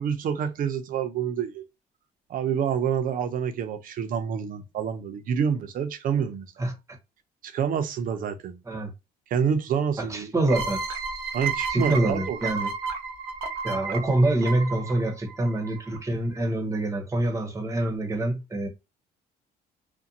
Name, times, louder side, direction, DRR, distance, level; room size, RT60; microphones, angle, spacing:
voice 1, 0.0-1.7 2.3-6.7 7.4-8.6 9.3-10.3 11.3-12.4, right 7 dB, 55° right, 0.6 m, -27 dB
voice 2, 10.0-10.8 11.7-12.7 13.6-18.7, right 1 dB, 20° right, 0.8 m, -25 dB
sound 1, 10.5-16.0, right 5 dB, 85° right, 0.7 m, -32 dB
2.5 x 2.2 x 2.6 m
cardioid pair, 110°, 17 cm